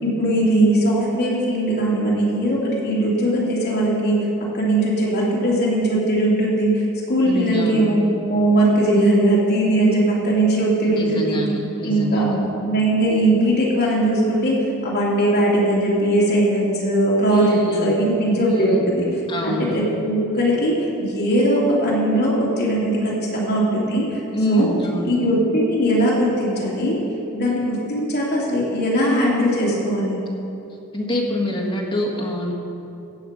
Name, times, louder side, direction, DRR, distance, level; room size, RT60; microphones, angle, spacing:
voice 1, 0.0-4.2 4.5-8.0 8.3-11.4 11.8-19.1 19.4-24.2 24.5-24.7 25.1-27.0 27.3-30.2, right 1 dB, 50° left, -6 dB, 2.9 m, -19 dB
voice 2, 7.2-7.8 10.8-12.4 17.3-18.0 18.4-18.9 19.3-19.7 24.3-25.1 30.9-32.5, left 1 dB, 25° left, -3 dB, 1.6 m, -26 dB
15.5 x 8.3 x 5.2 m, 2.8 s
head